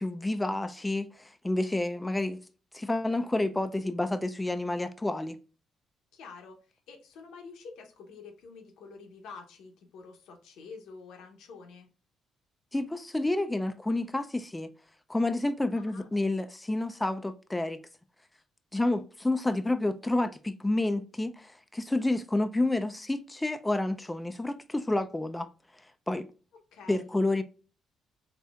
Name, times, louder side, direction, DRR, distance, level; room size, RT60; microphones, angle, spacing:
voice 1, 0.0-2.4 2.7-5.4 12.7-14.7 15.1-17.8 18.7-25.5 26.1-26.3 26.9-27.4, left 2 dB, 10° left, 0.3 m, -29 dB
voice 2, 6.1-11.9 15.8-16.1 26.7-27.1, left 4 dB, 85° left, 0.8 m, -48 dB
4.1 x 2.7 x 2.3 m
cardioid pair, 90°, 0 cm